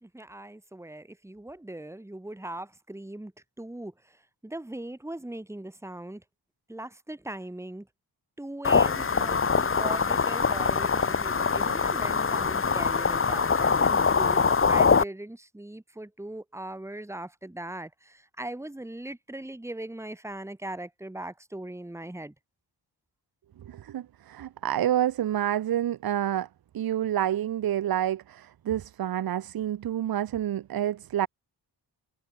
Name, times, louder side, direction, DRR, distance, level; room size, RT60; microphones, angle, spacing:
voice 1, 0.0-3.3 3.6-4.2 4.4-6.2 6.7-7.9 8.4-22.3, right 1 dB, 5° right, 2.6 m, -39 dB
sound 1, 8.6-15.0, left 5 dB, 30° left, 1.5 m, -23 dB
voice 2, 23.7-26.5 26.7-31.3, right 11 dB, 60° right, 0.7 m, -28 dB
wide cardioid pair, 155°, 41 cm